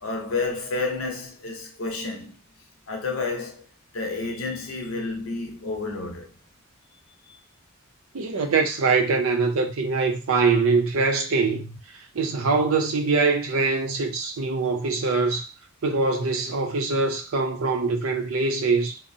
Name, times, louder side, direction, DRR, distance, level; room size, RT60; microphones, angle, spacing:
voice 1, 0.0-2.4 2.9-3.6 3.9-6.3, left 3 dB, 85° left, 0.7 m, -30 dB
voice 2, 8.1-15.5 15.8-19.0, right 4 dB, 80° right, 0.5 m, -23 dB
2.6 x 2.0 x 2.6 m
head